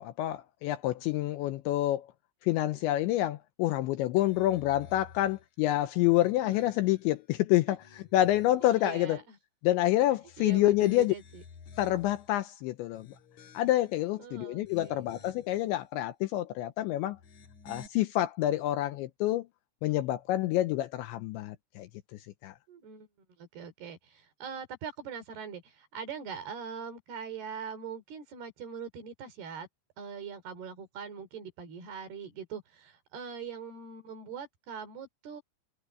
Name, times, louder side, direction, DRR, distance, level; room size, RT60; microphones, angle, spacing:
voice 1, 0.0-2.1 2.4-7.8 8.1-9.2 9.6-11.1 11.8-13.1 13.5-17.2 17.7-19.5 19.8-21.9 22.4-22.5, left 15 dB, 85° left, 2.8 m, -27 dB
sound 1, 4.2-5.5 6.0-7.1 7.6-8.7 10.2-12.4 12.9-14.0 14.5-15.6 17.1-17.9, left 4 dB, 50° left, 2.4 m, -53 dB
voice 2, 8.6-9.4 10.4-11.4 14.2-15.1 22.7-23.1 23.4-29.7 30.0-35.4, right 6 dB, 55° right, 4.8 m, -42 dB
omnidirectional pair, 5.9 m